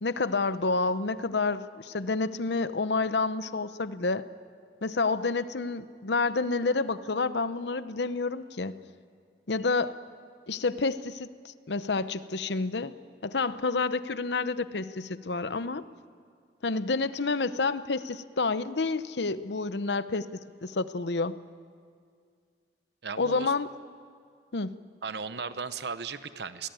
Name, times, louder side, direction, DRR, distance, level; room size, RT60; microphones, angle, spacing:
voice 1, 0.0-4.2 4.8-8.8 9.5-10.0 10.5-12.9 13.2-15.8 16.6-21.3 23.2-23.7 24.5-24.7, left 3 dB, 80° left, 13 dB, 0.8 m, -29 dB
voice 2, 23.0-23.5 25.0-26.7, right 5 dB, 70° right, 12 dB, 0.9 m, -36 dB
24.5 x 19.0 x 9.1 m, 2.1 s
head